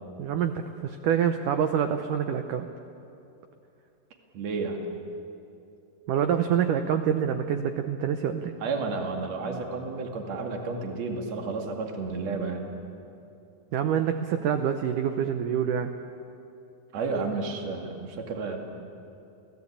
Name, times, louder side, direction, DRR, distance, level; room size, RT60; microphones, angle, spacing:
voice 1, 0.2-2.7 6.1-8.5 13.7-15.9, right 8 dB, 85° right, 7 dB, 1.8 m, -26 dB
voice 2, 4.3-4.8 8.6-12.8 16.9-18.6, right 4 dB, 45° right, 2 dB, 3.0 m, -31 dB
28.0 x 17.5 x 8.7 m, 2.7 s
omnidirectional pair, 4.9 m